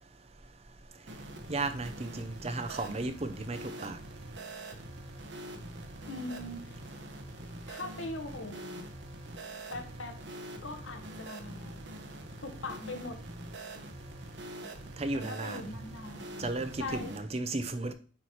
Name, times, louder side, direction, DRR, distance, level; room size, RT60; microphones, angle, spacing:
sound 1, 1.1-17.2, right 1 dB, 65° right, 1.0 m, -44 dB
voice 1, 1.5-4.0 15.0-15.7 16.4-17.9, right 2 dB, 30° right, 0.6 m, -34 dB
voice 2, 6.1-6.8 7.7-8.9 9.7-10.2 10.6-11.8 12.4-13.2 15.1-16.5 16.8-17.1, left 2 dB, 90° left, 1.3 m, -41 dB
8.6 x 3.2 x 4.2 m
head